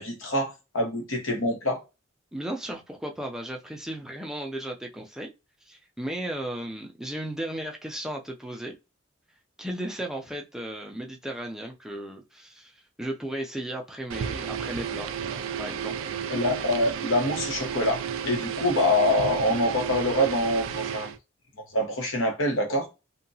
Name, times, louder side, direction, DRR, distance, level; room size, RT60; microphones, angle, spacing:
voice 1, 0.0-1.8 16.3-21.1 21.7-22.9, left 1 dB, 85° left, 1.0 m, -25 dB
voice 2, 2.3-5.3 5.7-8.7 9.6-15.1 15.6-15.9, right 1 dB, 5° right, 0.4 m, -35 dB
sound 1, 14.1-21.2, right 7 dB, 80° right, 0.3 m, -32 dB
2.8 x 2.2 x 2.6 m
head